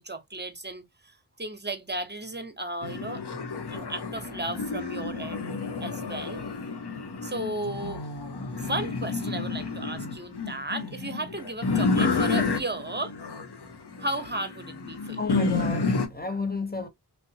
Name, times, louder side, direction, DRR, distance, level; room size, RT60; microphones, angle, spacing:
voice 1, 0.0-3.2 3.7-6.4 7.2-8.2 8.5-13.1 14.0-15.2, right 2 dB, 25° right, 0.9 m, -35 dB
sound 1, 2.8-16.1, left 4 dB, 70° left, 0.9 m, -30 dB
voice 2, 15.2-16.9, left 4 dB, 25° left, 0.9 m, -32 dB
3.4 x 2.7 x 2.8 m
wide cardioid pair, 45°, 41 cm